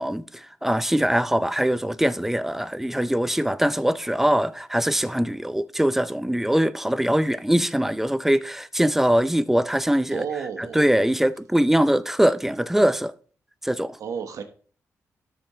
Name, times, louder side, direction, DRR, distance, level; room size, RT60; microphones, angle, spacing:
voice 1, 0.0-10.2 10.6-13.1 13.6-14.0, equal, 5° right, 0.5 m, -22 dB
voice 2, 10.1-10.8 14.0-14.4, right 7 dB, 80° right, 1.3 m, -31 dB
13.0 x 5.2 x 3.2 m
cardioid pair, 85°, 6 cm